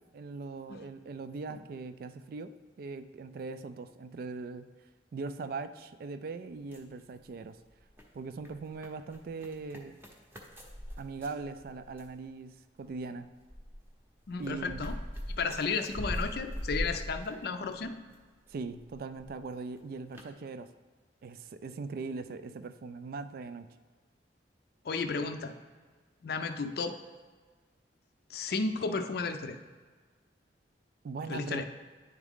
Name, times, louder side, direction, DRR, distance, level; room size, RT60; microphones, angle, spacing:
voice 1, 0.0-4.7 5.1-7.6 8.1-10.0 11.0-13.3 14.4-14.9 18.5-20.7 21.2-23.7 31.0-31.6, right 4 dB, 55° right, 11 dB, 0.3 m, -40 dB
sound 1, 6.5-7.5 7.8-12.2 12.8-18.2 18.5-19.4 19.7-19.8 20.1-20.3, equal, 10° right, 0.7 m, -41 dB
voice 2, 14.3-15.0 15.4-18.0 24.8-25.5 26.2-27.0 28.3-29.6 31.3-31.6, left 4 dB, 60° left, 8 dB, 0.4 m, -33 dB
9.6 x 3.6 x 3.6 m, 1.5 s
head